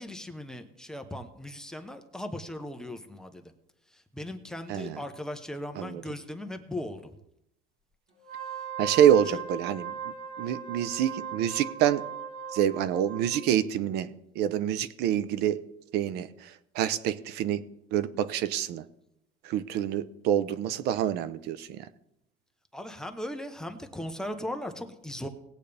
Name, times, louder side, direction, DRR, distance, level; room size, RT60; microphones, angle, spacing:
voice 1, 0.0-3.5 3.9-7.1 9.3-9.4 22.7-25.3, left 1 dB, 5° left, 6 dB, 0.9 m, -38 dB
voice 2, 4.7-5.0 5.8-6.0 8.8-12.0 12.5-15.6 15.9-17.6 17.9-18.8 19.4-21.9, right 10 dB, 60° right, 14 dB, 0.8 m, -27 dB
Wind instrument woodwind instrument, 8.2-13.4, right 8 dB, 90° right, 4.4 m, -38 dB
19.0 x 8.3 x 3.5 m, 0.82 s
cardioid pair, 145°, 19 cm